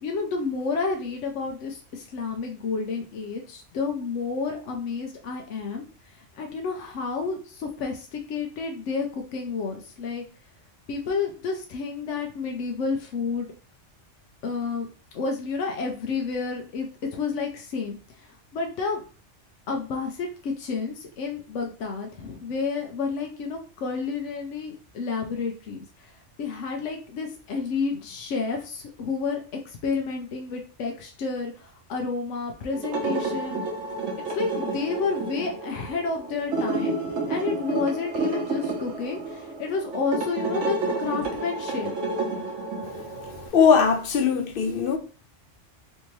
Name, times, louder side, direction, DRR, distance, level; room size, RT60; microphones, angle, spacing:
voice 1, 0.0-10.2 10.9-13.5 14.4-14.9 15.1-19.0 19.7-26.1 26.4-33.6 34.3-37.0 37.3-41.9, left 4 dB, 80° left, 1.0 m, -30 dB
sound 1, 32.7-43.5, right 3 dB, 85° right, 1.2 m, -30 dB
voice 2, 43.5-45.0, left 6 dB, 60° left, 0.6 m, -20 dB
3.4 x 2.7 x 3.0 m
omnidirectional pair, 1.2 m